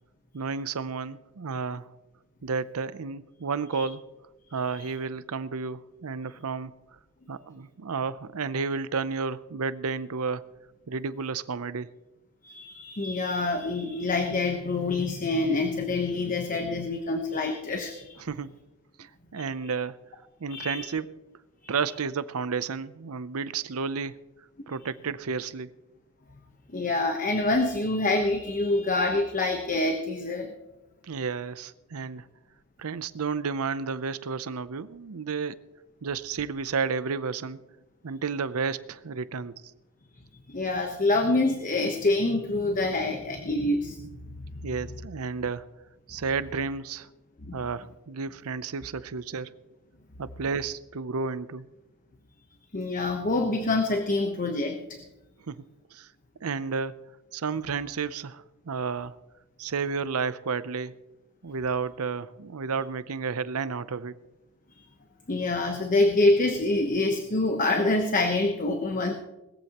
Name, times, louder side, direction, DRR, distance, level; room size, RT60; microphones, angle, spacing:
voice 1, 0.3-1.9 2.4-4.1 4.5-6.7 7.3-10.5 10.9-11.9 18.2-18.5 19.0-20.0 20.4-21.1 21.7-24.2 24.7-25.7 31.0-32.3 32.8-35.6 36.0-37.6 38.0-39.5 44.6-45.7 46.1-47.1 47.5-49.5 50.2-51.7 55.5-55.6 55.9-56.1 56.4-57.0 57.3-59.1 59.6-61.0 61.4-64.2, right 5 dB, 70° right, 15 dB, 0.6 m, -32 dB
voice 2, 12.4-18.1 20.5-20.8 21.6-21.7 26.7-30.5 40.5-44.0 44.3-44.4 47.4-47.6 52.7-55.0 65.3-69.1, left 2 dB, 35° left, 4 dB, 1.1 m, -26 dB
20.0 x 14.5 x 3.0 m, 1.0 s
head